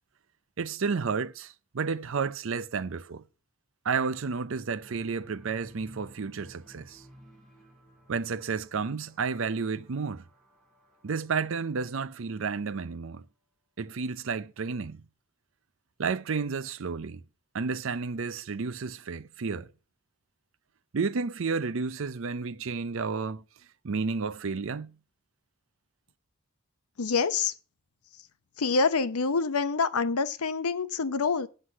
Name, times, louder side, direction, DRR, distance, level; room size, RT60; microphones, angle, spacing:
voice 1, 0.6-3.2 3.8-7.0 8.1-10.2 11.0-13.2 13.8-15.0 16.0-17.2 17.5-19.7 20.9-23.4 23.8-25.0, right 5 dB, 60° right, 0.5 m, -31 dB
sound 1, 4.7-13.0, equal, ahead, 2.8 m, -57 dB
voice 2, 27.0-27.5 28.6-31.5, left 4 dB, 90° left, 0.7 m, -26 dB
8.1 x 7.8 x 5.6 m
head